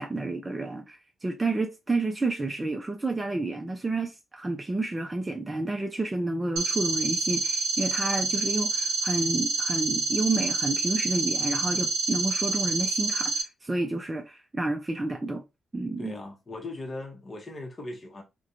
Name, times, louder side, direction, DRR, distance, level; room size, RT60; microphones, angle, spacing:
voice 1, 0.0-15.4 15.7-16.1, right 2 dB, 25° right, 0.5 m, -30 dB
sound 1, 6.6-13.4, right 4 dB, 85° right, 0.5 m, -28 dB
voice 2, 16.0-18.2, left 2 dB, 40° left, 0.8 m, -39 dB
2.4 x 2.1 x 2.8 m
hypercardioid pair, 50°, 0 cm